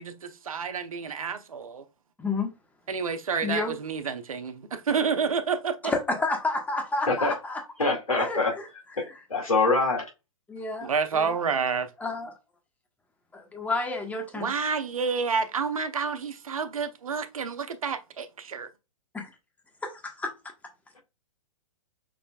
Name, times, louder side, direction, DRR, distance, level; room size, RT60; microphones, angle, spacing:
voice 1, 0.0-1.8 2.9-5.9 10.8-11.9 14.3-18.7, right 5 dB, 85° right, 0.9 m, -29 dB
voice 2, 2.2-2.5 3.4-3.8 5.8-7.6 8.2-8.7 9.0-9.2 10.5-11.4 12.0-12.3 13.3-14.5 19.1-19.3 19.8-20.3, left 3 dB, 10° left, 1.4 m, -30 dB
voice 3, 7.8-8.5 9.3-10.0, left 3 dB, 90° left, 2.2 m, -24 dB
6.4 x 3.3 x 2.4 m
hypercardioid pair, 125°, 18 cm